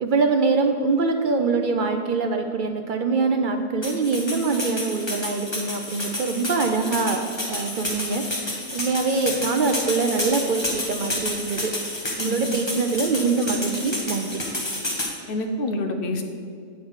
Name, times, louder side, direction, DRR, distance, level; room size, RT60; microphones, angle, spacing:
voice 1, 0.0-7.2 7.5-8.2 8.7-11.7 12.2-14.4, right 4 dB, 60° right, 5 dB, 0.6 m, -24 dB
sound 1, 3.8-15.1, left 1 dB, 25° left, 1.3 m, -30 dB
voice 2, 12.2-12.6 15.3-16.3, left 1 dB, 60° left, 5 dB, 0.9 m, -27 dB
8.6 x 3.7 x 6.2 m, 2.2 s
omnidirectional pair, 1.1 m